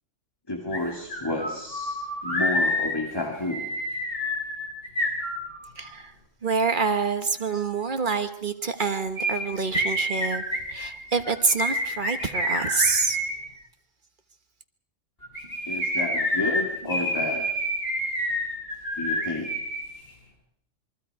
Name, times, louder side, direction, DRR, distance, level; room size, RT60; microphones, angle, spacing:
voice 1, 0.5-2.0 2.2-3.7 15.7-17.5 19.0-19.6, left 2 dB, 20° left, 2 dB, 2.3 m, -31 dB
sound 1, 0.7-0.8 1.1-5.9 9.1-13.4 15.2-19.8 20.1-20.2, equal, 50° left, 7.1 m, -28 dB
voice 2, 5.8-6.1 6.4-10.4 10.7-13.2, right 4 dB, 40° right, 8 dB, 1.4 m, -26 dB
27.5 x 23.0 x 4.8 m, 0.69 s
omnidirectional pair, 1.3 m